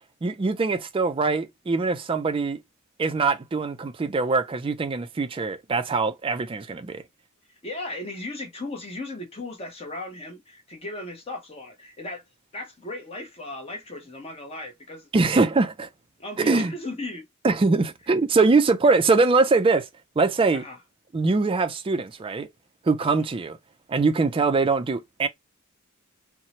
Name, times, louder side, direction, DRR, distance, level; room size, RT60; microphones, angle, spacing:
voice 1, 0.2-2.6 3.0-7.0 15.1-15.9 16.4-16.7 17.4-19.9 20.2-20.6 21.1-22.5 22.8-23.6 23.9-25.3, right 3 dB, 25° right, 0.3 m, -22 dB
voice 2, 7.5-12.2 12.5-15.1 16.2-17.2 20.5-20.8 23.0-23.2, left 2 dB, 25° left, 0.8 m, -36 dB
2.7 x 2.0 x 2.8 m
head